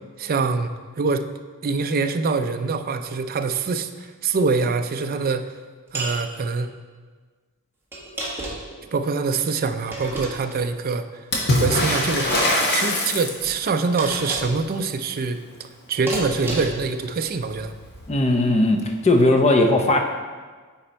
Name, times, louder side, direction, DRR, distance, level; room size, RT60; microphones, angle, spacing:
voice 1, 0.2-0.7 1.0-1.3 1.6-5.5 5.9-6.7 8.9-11.1 11.5-17.7, right 4 dB, 40° right, 8 dB, 0.4 m, -24 dB
sound 1, 5.9-6.2 7.9-8.8 9.9-10.6 12.0-12.5 14.0-14.6 16.1-16.9, right 2 dB, 10° right, 1.6 m, -31 dB
Water / Splash splatter, 11.3-13.7 17.0-17.1 17.3-18.1 19.2-19.3, left 1 dB, 50° left, 1.3 m, -22 dB
voice 2, 18.1-20.0, left 2 dB, 30° left, 4 dB, 0.7 m, -18 dB
9.1 x 4.4 x 4.4 m, 1.5 s
head